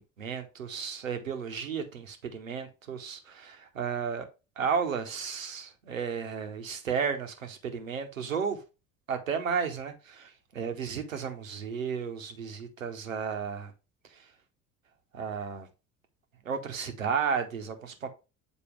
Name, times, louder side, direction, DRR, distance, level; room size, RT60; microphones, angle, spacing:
voice 1, 0.0-4.3 4.6-8.6 9.1-13.7 14.1-14.3 15.1-15.7 16.4-18.1, right 6 dB, 85° right, 0.9 m, -33 dB
7.2 x 4.2 x 3.3 m
figure-of-eight pair, 60°, 39 cm